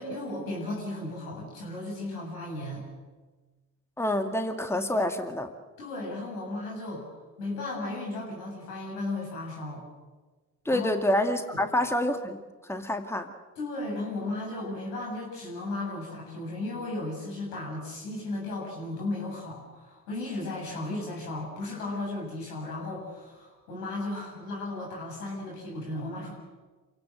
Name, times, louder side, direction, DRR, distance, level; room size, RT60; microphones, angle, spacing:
voice 1, 0.0-2.8 5.8-7.1 7.4-9.8 10.7-10.9 11.5-11.6 13.6-26.3, left 2 dB, 85° left, -2 dB, 7.5 m, -35 dB
voice 2, 4.0-5.5 10.7-13.3, left 1 dB, 5° left, 7 dB, 2.2 m, -27 dB
27.5 x 17.0 x 7.8 m, 1.3 s
hypercardioid pair, 50°, 44 cm